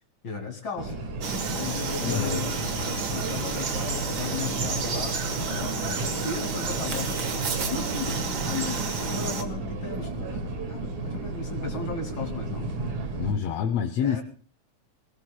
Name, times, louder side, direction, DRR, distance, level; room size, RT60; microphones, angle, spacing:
voice 1, 0.2-0.9 1.5-2.6 3.1-5.2 5.5-7.4 7.6-10.4 10.7-12.7 14.0-14.2, left 5 dB, 40° left, 3 dB, 3.0 m, -35 dB
sound 1, 0.8-13.3, right 2 dB, 80° right, 3.5 m, -33 dB
Frog, 1.2-9.4, right 5 dB, 45° right, 1.5 m, -31 dB
voice 2, 2.0-2.5 13.2-14.2, left 8 dB, 70° left, 7 dB, 1.8 m, -27 dB
24.0 x 18.0 x 2.3 m, 0.39 s
omnidirectional pair, 3.4 m